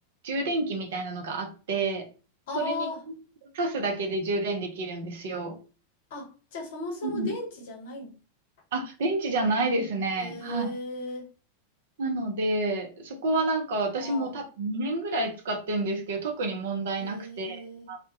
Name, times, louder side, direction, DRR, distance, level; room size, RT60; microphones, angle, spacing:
voice 1, 0.2-2.1 2.5-2.9 3.5-5.6 7.0-7.3 8.7-10.7 12.0-18.0, right 2 dB, 60° right, 4 dB, 0.5 m, -29 dB
voice 2, 2.5-3.0 6.1-8.1 10.2-11.2 14.0-14.4 17.0-17.9, left 2 dB, 55° left, 0 dB, 0.7 m, -36 dB
2.2 x 2.1 x 2.7 m, 0.35 s
figure-of-eight pair, 90°, 0 cm